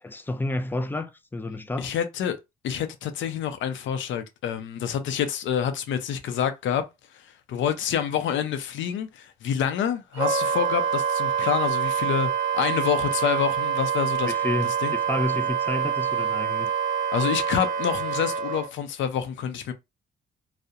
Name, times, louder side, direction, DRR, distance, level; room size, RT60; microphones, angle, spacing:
voice 1, 0.0-1.9 14.2-16.7, left 2 dB, 10° left, 0.3 m, -30 dB
voice 2, 1.8-2.4 2.6-6.8 7.1-7.2 7.5-14.3 14.8-14.9 17.1-19.7, left 8 dB, 70° left, 0.5 m, -27 dB
Wind instrument woodwind instrument, 10.2-18.7, right 7 dB, 75° right, 0.5 m, -26 dB
2.3 x 2.0 x 2.7 m
cardioid pair, 90°, 20 cm